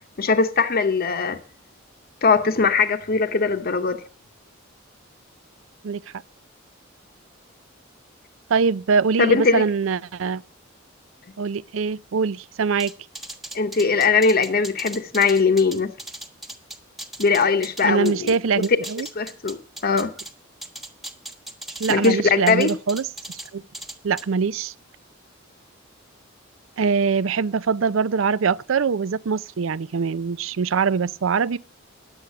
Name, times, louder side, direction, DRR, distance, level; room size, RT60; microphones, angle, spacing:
voice 1, 0.2-1.4 2.2-4.0 9.2-9.7 13.5-15.9 17.2-18.3 19.2-19.6 19.8-20.1 21.9-22.7, left 4 dB, 50° left, 0.8 m, -20 dB
voice 2, 8.5-10.4 11.4-12.9 17.8-19.1 21.8-23.1 23.5-23.6 24.0-24.7 26.8-31.6, right 5 dB, 75° right, 0.5 m, -23 dB
sound 1, 12.8-18.4 18.6-20.3 20.6-22.1 22.5-23.5 23.7-24.2, right 1 dB, ahead, 1.3 m, -37 dB
10.5 x 8.2 x 8.2 m
head